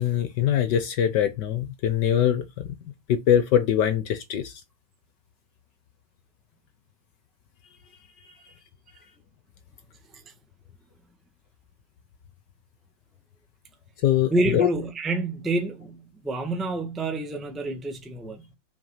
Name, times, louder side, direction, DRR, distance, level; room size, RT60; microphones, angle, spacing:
voice 1, 0.0-2.7 3.1-4.5 14.0-14.7, left 9 dB, 70° left, 1.3 m, -23 dB
voice 2, 14.3-18.6, right 2 dB, ahead, 0.9 m, -28 dB
6.3 x 4.4 x 5.6 m
omnidirectional pair, 2.1 m